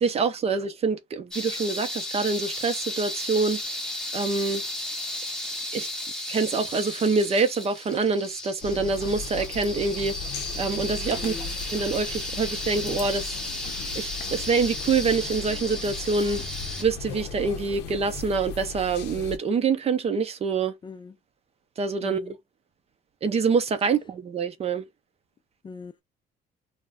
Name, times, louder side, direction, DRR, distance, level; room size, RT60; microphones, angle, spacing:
voice 1, 0.0-3.6 4.1-4.6 5.7-5.9 6.3-10.2 10.6-11.3 11.7-13.3 13.9-16.4 16.8-20.7 21.8-22.2 23.2-24.8, right 4 dB, 35° right, 0.6 m, -25 dB
sound 1, 1.3-16.8, left 1 dB, 5° left, 0.8 m, -34 dB
sound 2, 8.6-19.4, left 6 dB, 80° left, 0.6 m, -37 dB
voice 2, 11.2-11.5 20.8-21.2 22.0-22.4 25.6-26.0, left 4 dB, 30° left, 0.4 m, -41 dB
2.3 x 2.1 x 3.5 m
cardioid pair, 110°, 17 cm